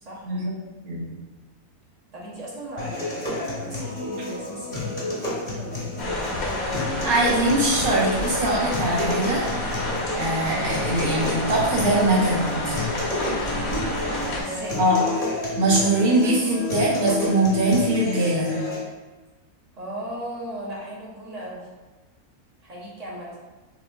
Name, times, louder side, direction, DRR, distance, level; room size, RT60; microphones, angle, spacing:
voice 1, 0.8-1.2 7.0-9.9 10.2-12.9 14.8-15.0 15.6-18.6, right 1 dB, 75° right, -5 dB, 1.4 m, -22 dB
voice 2, 2.1-6.3 13.5-14.8 19.7-21.7 22.6-23.3, right 1 dB, 35° right, -5 dB, 0.8 m, -37 dB
sound 1, 2.8-18.8, left 2 dB, 35° left, 0.8 m, -30 dB
sound 2, 6.0-14.4, left 1 dB, 75° left, 1.3 m, -29 dB
5.6 x 2.4 x 2.3 m, 1.2 s
omnidirectional pair, 1.5 m